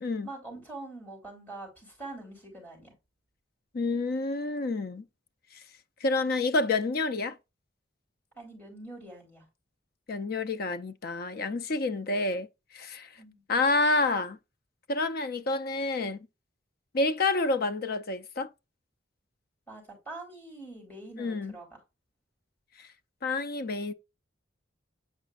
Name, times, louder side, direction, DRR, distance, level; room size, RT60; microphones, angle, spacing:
voice 1, 0.2-2.9 8.4-9.5 13.2-13.4 19.7-21.7, right 2 dB, 10° left, 3.8 m, -44 dB
voice 2, 3.7-5.0 5.5-5.6 6.0-7.4 10.1-12.5 12.7-13.1 13.5-14.4 14.9-16.2 16.9-18.5 21.2-21.5 22.8-22.9 23.2-23.9, left 3 dB, 50° left, 0.5 m, -28 dB
8.2 x 5.0 x 2.4 m
head